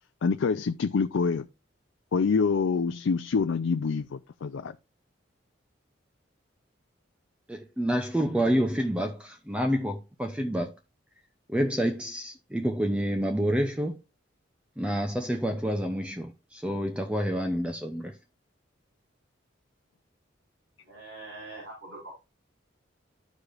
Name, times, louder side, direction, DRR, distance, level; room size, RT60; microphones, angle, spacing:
voice 1, 0.2-1.4 2.1-4.8, left 5 dB, 85° left, 0.4 m, -26 dB
voice 2, 7.5-10.7 11.5-14.0 14.8-18.1, equal, 5° right, 0.5 m, -28 dB
voice 3, 20.8-22.1, right 2 dB, 75° right, 4.6 m, -43 dB
13.5 x 4.9 x 2.5 m
head